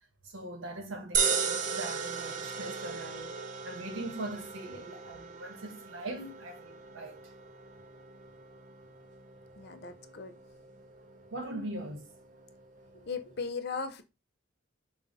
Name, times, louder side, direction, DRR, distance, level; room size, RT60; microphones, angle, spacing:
voice 1, 0.2-3.4 3.6-7.3 11.3-12.1, right 1 dB, 70° right, 1.0 m, -41 dB
sound 1, 1.1-13.5, right 6 dB, 40° right, 0.5 m, -37 dB
voice 2, 9.6-10.3 12.9-14.0, left 5 dB, 50° left, 0.5 m, -37 dB
5.2 x 2.3 x 3.9 m
head